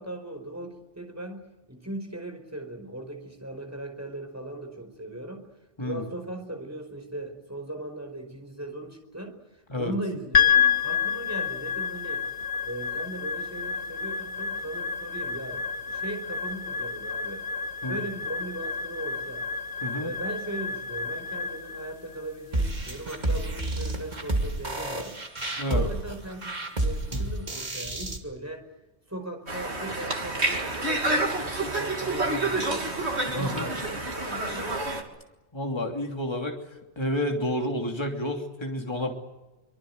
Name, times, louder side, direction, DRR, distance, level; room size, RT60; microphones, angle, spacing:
voice 1, 0.0-1.4 1.7-5.4 5.8-9.3 9.7-12.2 12.6-17.4 17.9-19.5 20.0-25.2 25.7-28.6 29.1-32.9 33.3-34.8, right 1 dB, 15° right, 4 dB, 4.9 m, -38 dB
sound 1, 10.3-24.7, left 7 dB, 60° left, 1.8 m, -29 dB
sound 2, 22.5-28.2, right 1 dB, 40° right, 2.6 m, -30 dB
voice 2, 25.6-25.9 27.1-27.2 33.2-33.7 35.5-36.6 37.0-39.1, left 1 dB, 25° left, 2 dB, 3.0 m, -30 dB
Conversation, 29.5-35.0, right 2 dB, 75° right, 3.2 m, -28 dB
24.5 x 23.5 x 8.1 m, 1.1 s
omnidirectional pair, 1.1 m